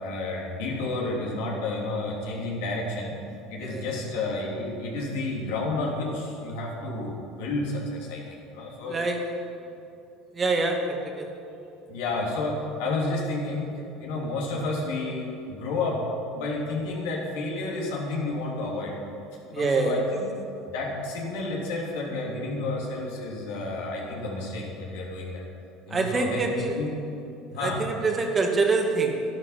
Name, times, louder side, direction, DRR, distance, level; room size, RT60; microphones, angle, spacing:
voice 1, 0.0-3.1 3.5-9.0 11.9-13.7 14.0-16.0 16.3-18.9 19.5-20.2 20.7-25.4 25.9-26.9 27.5-27.8, left 2 dB, 80° left, -2 dB, 3.0 m, -31 dB
voice 2, 8.9-9.3 10.3-11.3 19.5-20.0 25.9-26.8 27.6-29.2, right 3 dB, 30° right, 3 dB, 1.9 m, -25 dB
11.5 x 11.0 x 5.9 m, 2.7 s
supercardioid pair, 90°, 0 cm